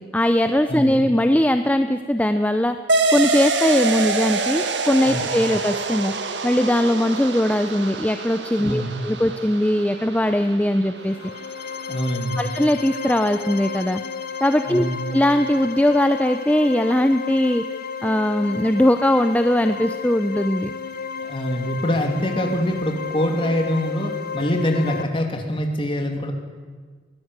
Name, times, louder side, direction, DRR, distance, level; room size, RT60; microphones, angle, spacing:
voice 1, 0.0-2.8 3.1-6.1 6.4-11.2 12.4-14.0 14.4-14.8 15.1-17.6 18.0-20.7, left 1 dB, 10° left, 8 dB, 0.6 m, -20 dB
sound 1, 2.9-11.9, right 3 dB, 75° right, 1.8 m, -26 dB
voice 2, 8.6-8.9 11.9-12.4 14.7-15.0 21.2-26.3, equal, 30° left, 3 dB, 2.9 m, -24 dB
sound 2, 11.0-25.0, left 6 dB, 55° left, 1.1 m, -32 dB
22.5 x 17.0 x 8.2 m, 1.5 s
head